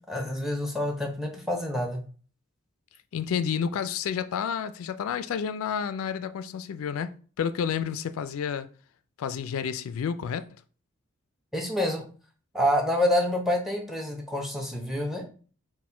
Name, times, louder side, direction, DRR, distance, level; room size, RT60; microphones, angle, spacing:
voice 1, 0.1-2.0 11.5-12.0 12.5-15.2, left 1 dB, ahead, 0.7 m, -27 dB
voice 2, 3.1-8.7 9.2-10.4, left 7 dB, 80° left, 0.3 m, -30 dB
4.1 x 2.2 x 4.3 m
head